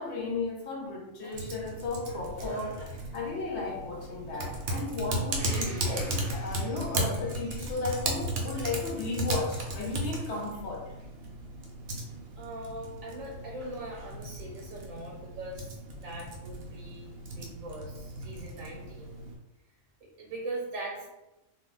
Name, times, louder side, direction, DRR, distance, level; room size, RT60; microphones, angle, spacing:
voice 1, 0.0-2.8 3.1-6.1 6.4-10.9, left 3 dB, 60° left, -2 dB, 0.8 m, -34 dB
Cough, 1.2-1.6 2.4-3.1 4.3-4.6 5.8-6.9 10.0-10.8 12.2-12.3, left 2 dB, 5° left, 1.0 m, -44 dB
Typing, 1.3-19.3, right 2 dB, 60° right, 0.7 m, -36 dB
Domestic sounds home sounds, 5.4-10.2 11.0-11.1, right 1 dB, 25° right, 0.7 m, -47 dB
voice 2, 12.4-15.8 16.0-19.1 20.2-21.1, right 1 dB, 75° right, -2 dB, 1.1 m, -41 dB
2.5 x 2.2 x 3.8 m, 0.97 s
omnidirectional pair, 1.4 m